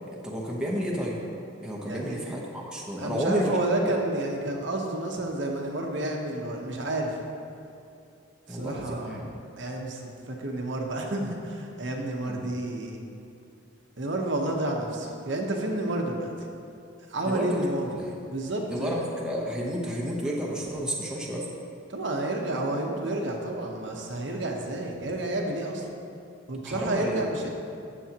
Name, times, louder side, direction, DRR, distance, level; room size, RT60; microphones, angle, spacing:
voice 1, 0.1-1.2 1.6-3.5 3.8-3.9 8.5-9.2 12.2-12.5 17.2-17.6 18.0-18.1 18.7-21.5 26.6-27.2, equal, 5° right, -4 dB, 0.9 m, -31 dB
voice 2, 1.9-2.2 3.0-7.2 8.5-9.3 9.6-13.0 14.0-16.3 17.1-17.9 18.3-19.0 21.9-25.8 26.5-27.5, right 1 dB, 60° right, 1 dB, 1.0 m, -30 dB
14.5 x 7.1 x 2.9 m, 2.5 s
head